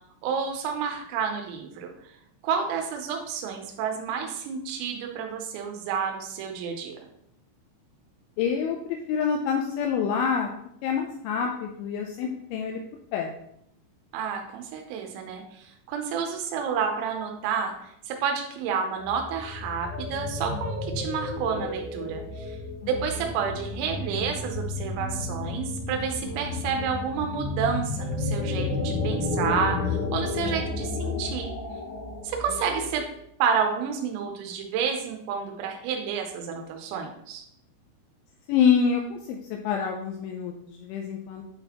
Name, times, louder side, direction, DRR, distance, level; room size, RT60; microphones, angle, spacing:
voice 1, 0.2-1.9 2.4-7.0 14.1-17.7 18.1-22.6 22.9-31.5 32.2-33.0 33.4-37.4, right 6 dB, 90° right, 3 dB, 3.4 m, -30 dB
voice 2, 8.4-10.5 10.8-12.8 13.1-13.3 22.8-23.0 38.5-41.4, left 7 dB, 85° left, 2 dB, 2.8 m, -26 dB
sound 1, 19.0-33.1, left 3 dB, 70° left, 3.2 m, -32 dB
8.8 x 4.0 x 2.9 m, 0.74 s
omnidirectional pair, 5.8 m